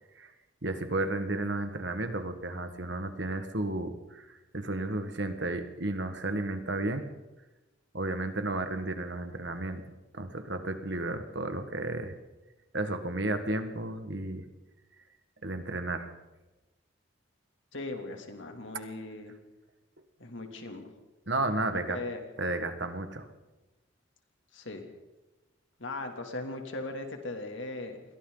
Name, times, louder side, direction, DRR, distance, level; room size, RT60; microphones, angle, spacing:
voice 1, 0.6-7.0 7.9-12.2 12.7-14.5 15.4-16.1 21.3-22.0 22.4-23.3, right 2 dB, 60° right, 8 dB, 1.7 m, -33 dB
voice 2, 17.7-19.3 20.2-20.9 21.7-22.2 24.5-24.8 25.8-28.0, left 2 dB, 65° left, 4 dB, 2.9 m, -38 dB
29.0 x 22.5 x 4.0 m, 1.1 s
head